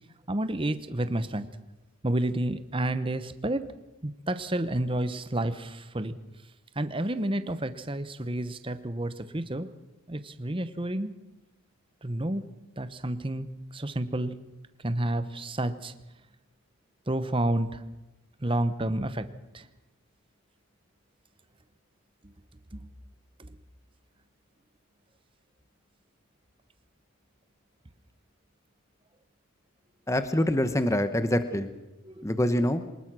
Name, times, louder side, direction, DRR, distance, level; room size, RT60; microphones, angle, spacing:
voice 1, 0.3-1.5 2.0-3.6 4.0-6.1 6.7-9.7 10.1-11.1 12.0-12.5 12.8-14.4 14.8-15.9 17.1-17.8 18.4-19.3 19.5-19.7 22.7-22.9 23.4-23.6 32.0-32.2, right 1 dB, 25° right, 12 dB, 0.9 m, -30 dB
voice 2, 30.1-31.7 32.2-32.8, left 1 dB, 15° left, 10 dB, 0.9 m, -25 dB
24.0 x 20.0 x 6.2 m, 1.0 s
head